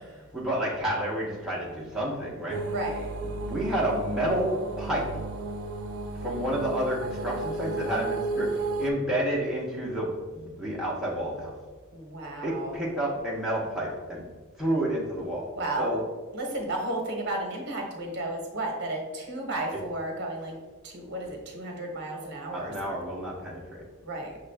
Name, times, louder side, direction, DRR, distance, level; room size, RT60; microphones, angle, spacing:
voice 1, 0.0-2.6 3.2-5.1 6.2-11.5 12.4-14.2 14.6-15.5 15.8-16.0 22.5-23.8, right 1 dB, ahead, -6 dB, 0.6 m, -30 dB
sound 1, 2.5-8.9, right 3 dB, 80° right, 0.5 m, -33 dB
voice 2, 2.7-3.1 11.9-12.7 15.5-16.0 16.3-20.5 20.8-22.7 24.0-24.4, right 1 dB, 50° right, 1 dB, 0.9 m, -33 dB
5.9 x 2.4 x 3.3 m, 1.3 s
head